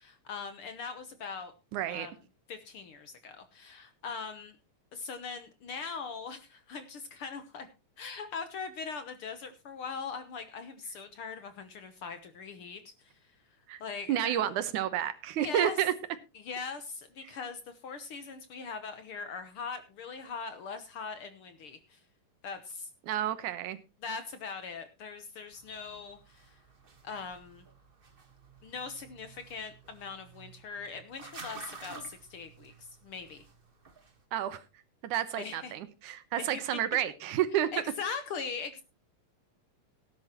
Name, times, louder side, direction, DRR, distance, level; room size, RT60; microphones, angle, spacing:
voice 1, 0.0-1.5 1.9-2.1 2.5-4.6 4.9-7.7 8.0-13.1 13.8-14.4 15.4-15.8 16.3-22.0 22.4-22.9 24.0-26.6 27.0-27.6 28.6-33.4 35.4-35.7 36.3-36.5 37.7-38.8, left 5 dB, 60° left, 10 dB, 1.5 m, -41 dB
voice 2, 1.7-2.1 13.7-13.8 14.1-15.9 17.2-17.3 23.0-23.8 34.3-34.6 35.0-37.7, right 11 dB, 85° right, 12 dB, 2.6 m, -30 dB
sound 1, 25.5-34.2, right 4 dB, 60° right, 0.5 m, -52 dB
18.0 x 10.5 x 3.0 m, 0.28 s
omnidirectional pair, 3.4 m